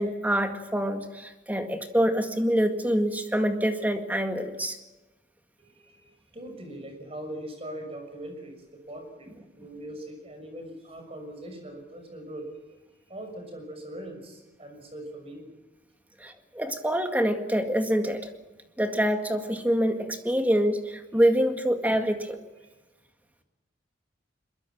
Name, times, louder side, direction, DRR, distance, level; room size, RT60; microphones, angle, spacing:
voice 1, 0.0-4.8 16.2-18.3 18.8-22.4, equal, 10° right, 6 dB, 1.9 m, -26 dB
voice 2, 5.6-12.8 13.1-15.5 22.6-22.7, right 1 dB, 30° right, 4 dB, 6.3 m, -41 dB
22.5 x 22.0 x 7.5 m, 1.2 s
head